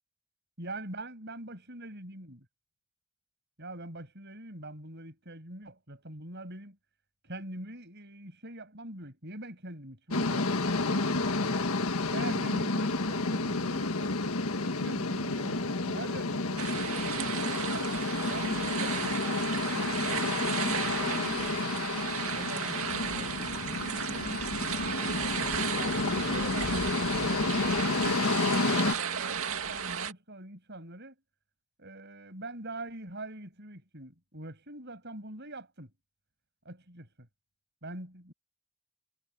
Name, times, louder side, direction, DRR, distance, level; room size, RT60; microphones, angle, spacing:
voice 1, 0.6-2.5 3.6-6.8 7.2-11.7 12.1-14.2 14.6-17.6 18.3-19.2 19.8-21.6 22.3-25.6 26.1-26.7 27.1-31.2 31.8-35.9 36.6-37.3 37.8-38.3, right 1 dB, 50° right, 7.3 m, -44 dB
sound 1, 10.1-28.9, left 3 dB, 75° left, 1.6 m, -30 dB
sound 2, 16.6-30.1, right 7 dB, 70° right, 2.2 m, -34 dB
head